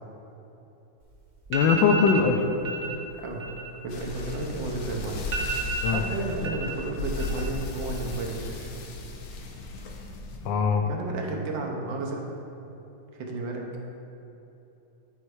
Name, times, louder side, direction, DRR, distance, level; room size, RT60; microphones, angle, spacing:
sound 1, 1.0-1.1 1.4-2.3 2.6-3.0 3.3-4.7 5.0-5.1 5.3-6.8 7.1-7.7 7.9-8.5, right 3 dB, 45° right, 1.2 m, -32 dB
voice 1, 1.5-2.5 5.8-6.0 10.4-10.8, left 5 dB, 80° left, 5 dB, 1.3 m, -21 dB
voice 2, 3.1-3.5 3.8-5.3 5.9-8.8 10.8-12.2 13.1-13.7, right 2 dB, 75° right, 0 dB, 1.6 m, -32 dB
sound 2, 3.9-10.5, left 2 dB, 60° left, 0.9 m, -36 dB
9.5 x 4.4 x 4.8 m, 2.9 s
omnidirectional pair, 2.1 m